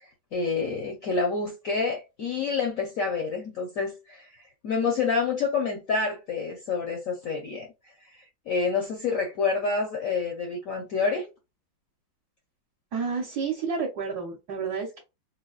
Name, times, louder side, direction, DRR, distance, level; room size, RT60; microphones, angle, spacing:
voice 1, 0.0-4.3 4.6-7.7 8.5-11.3, left 4 dB, 65° left, 0.9 m, -28 dB
voice 2, 12.9-15.0, right 5 dB, 60° right, 1.2 m, -30 dB
3.9 x 2.2 x 2.3 m
omnidirectional pair, 2.1 m